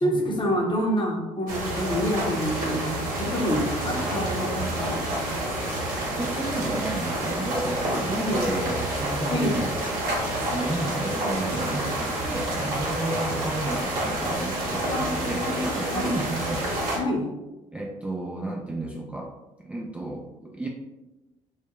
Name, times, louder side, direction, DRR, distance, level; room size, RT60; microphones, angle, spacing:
voice 1, 0.0-5.0 8.1-8.5 9.3-9.6 14.9-15.1 15.4-16.2 16.9-17.3, equal, 30° left, 0 dB, 0.8 m, -27 dB
sound 1, 1.5-17.0, right 1 dB, 60° right, 0.9 m, -28 dB
voice 2, 6.2-9.8 10.5-16.7 17.7-19.3 19.6-20.7, right 2 dB, 10° right, -2 dB, 0.3 m, -32 dB
2.3 x 2.1 x 3.0 m, 1.0 s
hypercardioid pair, 55°, 16 cm